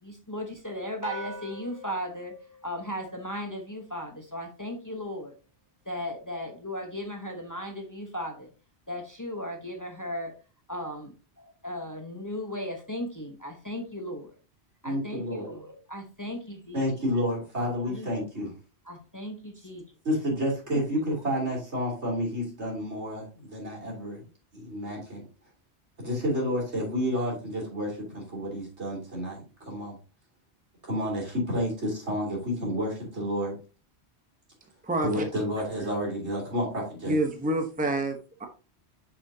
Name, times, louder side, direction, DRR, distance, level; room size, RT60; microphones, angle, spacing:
voice 1, 0.0-2.3 2.6-5.3 5.8-8.5 8.9-10.3 10.7-14.3 14.8-16.8 17.9-18.1 18.9-19.8 20.7-21.2, left 1 dB, 20° left, 3 dB, 1.0 m, -36 dB
sound 1, 1.0-3.6, right 2 dB, 45° right, 1.5 m, -43 dB
voice 2, 14.8-15.5 16.7-18.5 20.1-24.3 24.5-25.2 26.0-30.0 30.8-33.5 35.0-37.2, equal, 85° right, -2 dB, 3.6 m, -30 dB
voice 3, 37.1-38.5, right 1 dB, 10° right, 4 dB, 0.9 m, -27 dB
6.7 x 6.2 x 2.8 m, 0.33 s
omnidirectional pair, 1.1 m